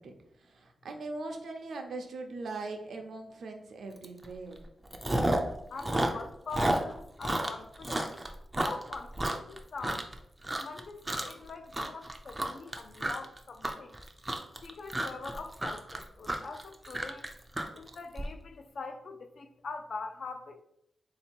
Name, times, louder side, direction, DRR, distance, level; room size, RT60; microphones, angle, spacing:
voice 1, 0.0-4.6, right 3 dB, 70° right, 0.6 m, -41 dB
Chewing mastication, 4.0-4.3 4.6-5.5 5.8-10.1 10.4-10.8 11.1-11.4 11.7-18.2, right 1 dB, 15° right, 0.4 m, -31 dB
voice 2, 5.7-8.1 8.6-10.1 10.6-14.0 14.6-17.3 17.7-20.6, left 3 dB, 50° left, 0.4 m, -43 dB
3.7 x 2.8 x 4.3 m
wide cardioid pair, 165°, 0 cm